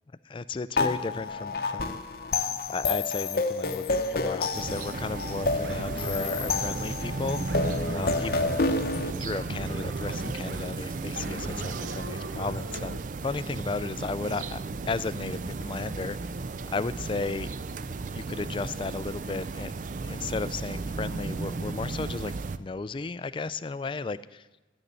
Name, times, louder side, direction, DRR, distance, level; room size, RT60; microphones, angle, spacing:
voice 1, 0.2-2.0 2.7-7.4 7.9-8.5 9.2-16.2 16.7-17.5 18.1-19.7 20.0-24.5, left 3 dB, 30° left, 15 dB, 0.3 m, -34 dB
sound 1, 0.8-9.1, left 3 dB, 55° left, 0.8 m, -29 dB
sound 2, 4.5-22.6, right 3 dB, 45° right, 0.4 m, -35 dB
sound 3, 5.6-13.0, right 2 dB, 65° right, 0.9 m, -39 dB
11.5 x 6.7 x 8.8 m, 1.1 s
head